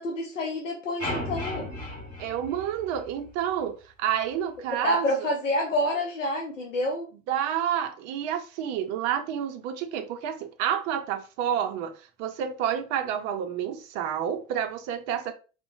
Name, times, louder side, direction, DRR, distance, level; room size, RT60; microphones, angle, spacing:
voice 1, 0.0-1.7 4.8-7.1, left 1 dB, 85° left, 0.6 m, -28 dB
sound 1, 1.0-3.3, left 1 dB, 20° left, 1.5 m, -35 dB
voice 2, 2.2-5.1 7.3-15.3, right 9 dB, 45° right, 0.5 m, -29 dB
2.8 x 2.1 x 2.5 m
figure-of-eight pair, 70°, 37 cm